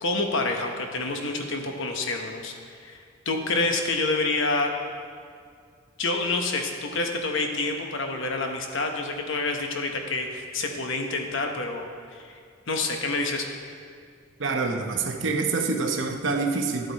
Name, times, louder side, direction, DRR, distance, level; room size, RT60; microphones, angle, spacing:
voice 1, 0.0-3.0 3.2-4.7 6.0-12.3 12.7-13.4, left 3 dB, 60° left, 3 dB, 1.0 m, -28 dB
voice 2, 14.4-16.9, right 4 dB, 60° right, 4 dB, 0.8 m, -26 dB
12.0 x 7.7 x 4.1 m, 2.1 s
head